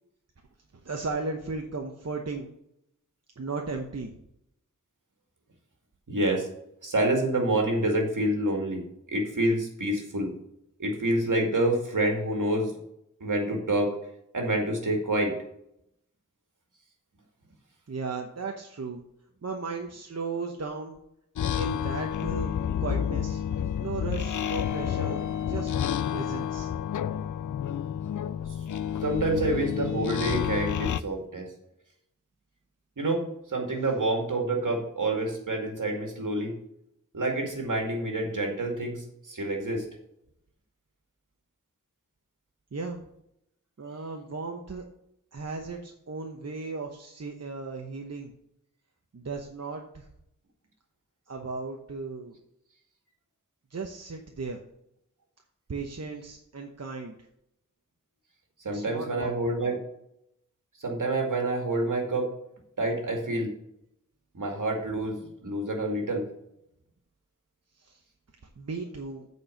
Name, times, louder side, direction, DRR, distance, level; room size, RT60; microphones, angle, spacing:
voice 1, 0.7-2.5 3.4-4.1 17.9-19.0 19.4-21.0 21.5-23.4 23.8-25.7 26.1-26.7 42.7-43.0 43.8-44.8 45.3-48.3 49.1-50.1 51.3-52.4 53.7-54.6 55.7-57.2 58.7-59.8 67.8-68.0 68.6-69.3, right 4 dB, 50° right, 2 dB, 1.0 m, -36 dB
voice 2, 6.1-6.5 6.8-8.8 9.1-10.3 10.8-12.7 13.2-13.9 14.3-15.3 29.0-31.5 33.0-36.5 37.1-39.8 58.6-59.8 60.8-62.3 62.8-63.5 64.3-66.2, right 1 dB, 75° right, 1 dB, 2.3 m, -27 dB
sound 1, 21.4-31.0, left 9 dB, 70° left, 0.4 m, -30 dB
8.5 x 4.6 x 6.4 m, 0.77 s
wide cardioid pair, 65°, 32 cm